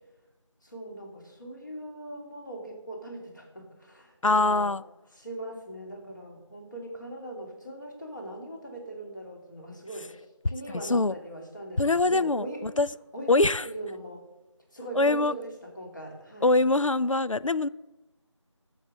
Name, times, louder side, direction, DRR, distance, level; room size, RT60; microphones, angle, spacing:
voice 1, 0.6-4.7 5.2-12.7 13.1-14.2 14.7-16.6, right 1 dB, 40° left, 2.9 m, -40 dB
voice 2, 4.2-4.8 10.9-11.1 11.8-12.9 13.3-13.6 15.0-15.3 16.4-17.7, left 2 dB, 90° left, 0.5 m, -23 dB
11.0 x 7.3 x 6.6 m
figure-of-eight pair, 175°, 16 cm